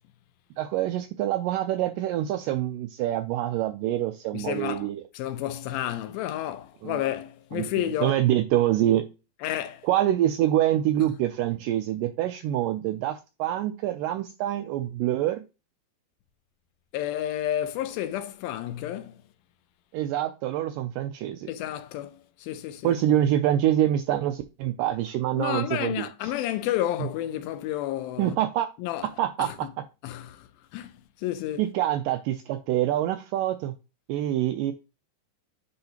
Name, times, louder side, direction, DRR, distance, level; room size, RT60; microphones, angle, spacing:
voice 1, 0.6-5.0 6.8-7.0 7.5-7.6 8.0-9.0 9.8-15.4 19.9-21.5 22.8-26.3 28.2-28.7 29.2-29.7 31.6-33.7 34.1-34.7, right 12 dB, 85° right, 1.9 m, -26 dB
voice 2, 4.3-4.9 5.1-8.2 9.4-9.9 16.9-19.2 21.5-23.0 25.3-28.4 28.8-29.1 29.4-29.7 30.0-31.6, left 12 dB, 85° left, 2.3 m, -31 dB
9.7 x 3.7 x 2.8 m
omnidirectional pair, 4.3 m